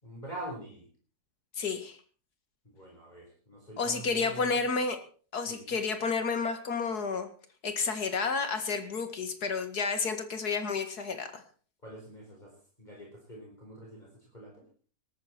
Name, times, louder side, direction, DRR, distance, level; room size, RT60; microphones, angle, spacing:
voice 1, 0.0-0.9 2.6-4.5 5.5-5.7 11.8-14.6, right 1 dB, 25° left, -2 dB, 4.8 m, -45 dB
voice 2, 1.6-2.0 3.8-5.0 5.3-7.3 7.6-11.4, left 4 dB, 70° left, 9 dB, 2.4 m, -31 dB
18.5 x 13.5 x 4.5 m, 0.41 s
omnidirectional pair, 1.7 m